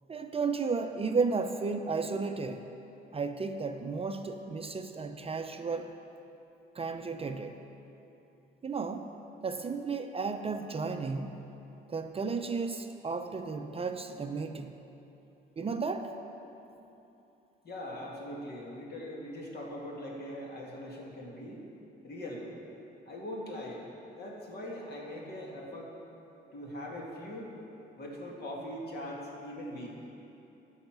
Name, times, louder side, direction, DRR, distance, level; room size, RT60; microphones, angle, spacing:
voice 1, 0.1-2.6 3.1-5.9 6.7-7.6 8.6-9.1 9.4-11.5 11.9-14.8 15.6-16.1, right 4 dB, 30° right, 6 dB, 0.5 m, -33 dB
voice 2, 17.6-21.6 22.0-22.5 23.1-23.8 24.1-25.9 26.5-27.5 28.0-30.0, left 1 dB, 55° left, -2 dB, 2.2 m, -41 dB
13.0 x 5.6 x 6.0 m, 3.0 s
cardioid pair, 90°, 20 cm